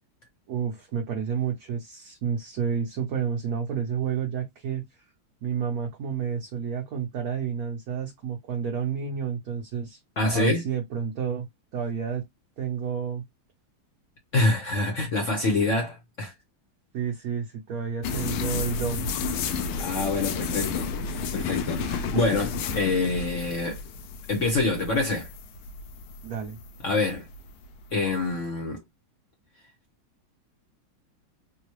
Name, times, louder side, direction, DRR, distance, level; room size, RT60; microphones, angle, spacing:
voice 1, 0.5-4.8 5.4-10.0 10.3-11.5 11.7-12.2 12.6-13.2 16.9-19.1 26.2-26.6, right 7 dB, 60° right, 1.1 m, -30 dB
voice 2, 10.2-10.6 14.3-16.3 19.8-20.9 21.3-23.8 24.3-25.3 26.8-27.3 27.9-28.8, left 3 dB, 55° left, 0.8 m, -26 dB
sound 1, 18.0-28.2, left 5 dB, 85° left, 1.4 m, -32 dB
3.9 x 2.2 x 3.0 m
omnidirectional pair, 2.3 m